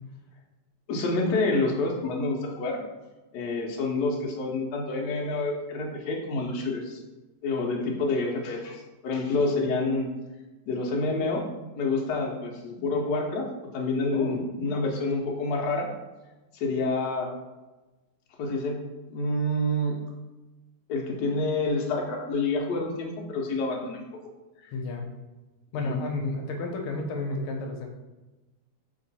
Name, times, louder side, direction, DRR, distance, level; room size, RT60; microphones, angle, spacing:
voice 1, 0.9-2.8 3.3-7.0 7.4-10.1 10.7-11.4 11.8-13.4 13.7-15.9 16.5-17.3 18.4-18.8 19.1-20.0 20.9-24.0 25.8-26.0, left 2 dB, 65° left, 0 dB, 1.1 m, -28 dB
voice 2, 24.7-25.0 25.7-27.9, left 3 dB, 80° left, 3 dB, 1.5 m, -32 dB
3.6 x 2.9 x 4.0 m, 1.1 s
omnidirectional pair, 2.4 m